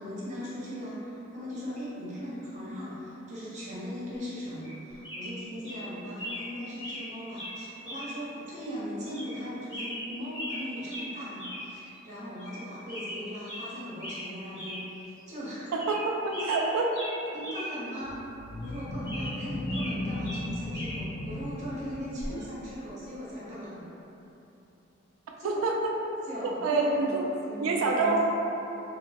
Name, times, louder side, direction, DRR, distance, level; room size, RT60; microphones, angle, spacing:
voice 1, 0.0-15.7 16.3-16.7 17.3-18.2 18.6-23.8 25.4-25.6 26.2-28.2, equal, 35° right, -9 dB, 0.7 m, -39 dB
sound 1, 4.6-4.8 5.0-5.4 5.6-5.8 6.2-6.5 6.8-7.1 7.4-7.5 7.9-8.1 8.5-8.6 9.1-9.4 9.7-10.6 10.9-11.1 11.4-11.6 11.9-12.0 12.4-12.6 12.9-13.7 14.0-14.3 14.5-14.8 15.2-15.3 15.7-16.0 16.3-17.7 18.0-18.1 18.6-20.0 20.2-21.0 22.2-22.4, equal, 25° left, 0.8 m, -39 dB
voice 2, 15.7-16.9 25.4-25.8 26.4-27.2 27.6-28.2, right 3 dB, 85° right, 1 dB, 0.3 m, -27 dB
sound 2, 18.0-22.4, left 1 dB, 65° left, 0.3 m, -36 dB
2.9 x 2.0 x 2.7 m, 3.0 s
head